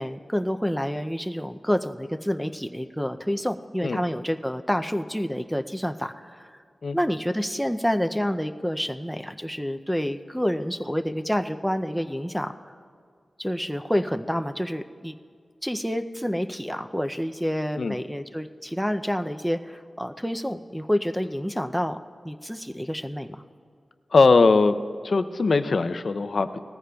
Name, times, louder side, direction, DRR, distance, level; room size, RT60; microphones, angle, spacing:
voice 1, 0.0-6.6 6.9-12.5 13.4-15.2 15.6-22.0 22.2-23.4, equal, ahead, 7 dB, 0.4 m, -28 dB
voice 2, 24.1-24.8 25.0-26.6, left 4 dB, 60° left, 11 dB, 0.4 m, -20 dB
18.5 x 14.5 x 2.3 m, 2.1 s
wide cardioid pair, 115°, 0 cm